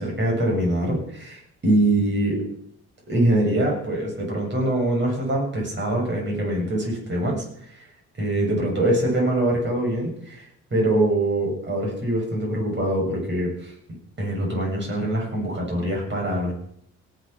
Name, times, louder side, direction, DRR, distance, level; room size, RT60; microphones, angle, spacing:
voice 1, 0.0-2.4 3.1-7.9 8.2-13.7 14.2-16.5, right 1 dB, 35° right, -1 dB, 7.5 m, -24 dB
18.0 x 7.2 x 6.1 m, 0.68 s
cardioid pair, 90°, 30 cm